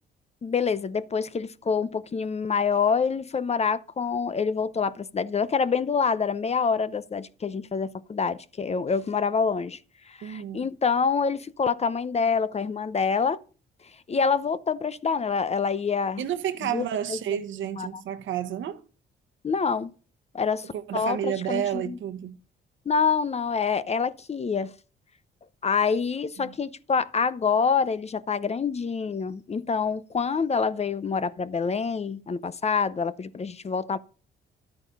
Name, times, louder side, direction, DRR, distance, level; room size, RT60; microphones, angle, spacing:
voice 1, 0.4-9.8 10.1-13.4 14.1-16.2 16.6-17.4 17.8-18.0 19.4-19.9 20.3-22.0 22.9-24.7 25.6-34.0, left 5 dB, 30° left, 0.7 m, -26 dB
voice 2, 10.2-10.7 16.2-18.8 20.6-22.4 26.4-26.5, right 10 dB, 75° right, 1.2 m, -31 dB
11.5 x 8.8 x 5.5 m
cardioid pair, 90°, 20 cm